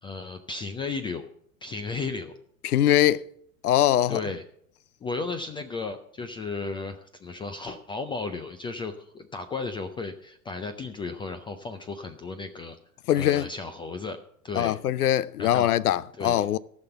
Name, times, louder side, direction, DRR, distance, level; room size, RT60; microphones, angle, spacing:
voice 1, 0.0-1.3 1.6-2.3 4.1-4.4 5.0-12.8 13.1-14.2 14.4-14.8 15.4-15.7 16.2-16.5, left 4 dB, 10° left, 0.4 m, -34 dB
voice 2, 2.6-3.2 3.6-4.2 13.1-13.5 14.6-16.6, left 12 dB, 80° left, 0.6 m, -22 dB
14.5 x 6.1 x 6.8 m
hypercardioid pair, 110°, 44 cm